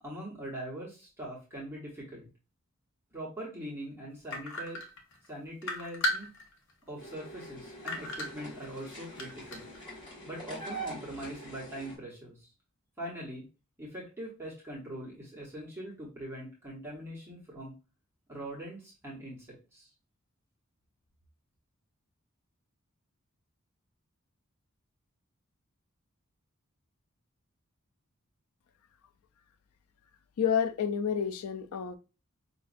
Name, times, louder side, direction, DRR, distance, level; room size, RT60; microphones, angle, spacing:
voice 1, 0.0-2.3 3.1-4.8 5.3-6.3 6.9-9.7 10.2-12.5 13.0-13.5 13.8-17.7 18.3-19.9, right 1 dB, 10° right, -5 dB, 1.1 m, -42 dB
sound 1, 4.3-5.3 5.6-6.7 7.1-7.2 7.9-8.8 9.2-9.8, left 1 dB, 60° left, 0.9 m, -34 dB
sound 2, 7.0-11.9, right 2 dB, 25° left, 1.7 m, -44 dB
voice 2, 30.4-32.0, left 7 dB, 85° left, 11 dB, 0.4 m, -29 dB
5.0 x 2.5 x 2.5 m, 0.32 s
head